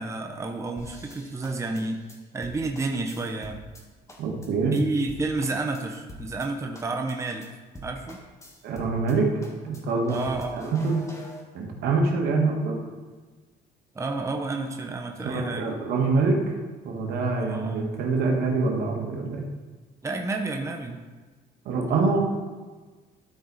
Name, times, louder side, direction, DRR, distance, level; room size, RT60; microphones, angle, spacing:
voice 1, 0.0-2.0 2.3-3.6 4.7-7.5 7.8-8.2 10.1-10.7 13.9-15.7 17.4-17.9 20.0-21.0, right 3 dB, 15° right, 2 dB, 0.8 m, -30 dB
sound 1, 0.8-3.8 4.1-4.5 4.8-4.9 5.1-6.5 6.7-7.1 7.4-7.5 7.7-9.1 9.4-11.4, equal, 15° left, 1.6 m, -44 dB
voice 2, 4.2-4.8 8.6-9.3 9.6-10.2 10.5-11.0 11.5-12.8 15.2-16.5 16.8-19.4 21.6-22.2, right 3 dB, 75° right, 0 dB, 1.6 m, -25 dB
13.0 x 4.7 x 4.1 m, 1.4 s
cardioid pair, 110°, 17 cm